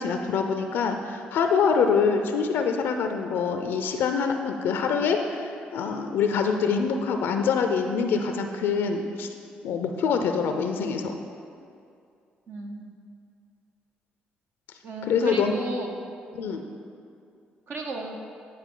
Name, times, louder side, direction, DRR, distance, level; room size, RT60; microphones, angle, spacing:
voice 1, 0.0-9.3 9.6-11.2 15.0-15.5 16.3-16.6, left 5 dB, 75° left, 6 dB, 0.4 m, -25 dB
voice 2, 12.5-12.9 14.8-15.9 17.7-18.2, right 1 dB, 65° right, 1 dB, 1.0 m, -34 dB
10.0 x 4.4 x 3.8 m, 2.4 s
supercardioid pair, 65°, 4 cm